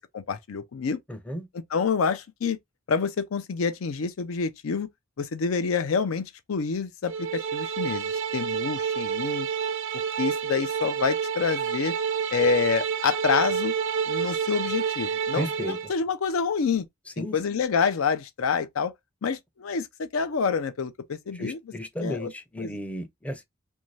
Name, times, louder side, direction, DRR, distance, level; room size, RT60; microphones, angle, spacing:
voice 1, 0.1-1.0 1.7-2.6 2.9-4.9 5.2-9.5 9.9-11.9 12.3-13.7 14.1-16.9 17.2-18.9 19.2-21.6 22.0-22.3 22.6-22.7, left 5 dB, 85° left, 0.5 m, -27 dB
voice 2, 1.1-1.5 15.3-15.8 17.2-17.6 21.3-23.4, equal, 5° left, 0.4 m, -34 dB
sound 1, 7.1-15.9, right 7 dB, 65° right, 0.4 m, -29 dB
2.6 x 2.2 x 3.1 m
head